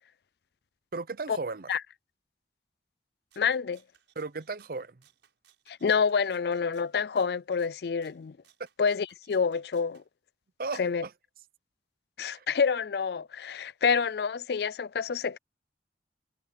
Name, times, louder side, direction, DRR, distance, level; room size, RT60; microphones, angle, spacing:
voice 1, 0.9-1.7 4.2-5.0 10.6-11.1 12.3-12.5, right 3 dB, 50° right, 0.7 m, -35 dB
Rattle (instrument), 3.3-10.1, right 10 dB, 85° right, 5.7 m, -65 dB
voice 2, 3.4-3.8 5.7-8.4 8.8-10.0 10.8-11.0 12.2-15.4, left 6 dB, 60° left, 0.4 m, -28 dB
head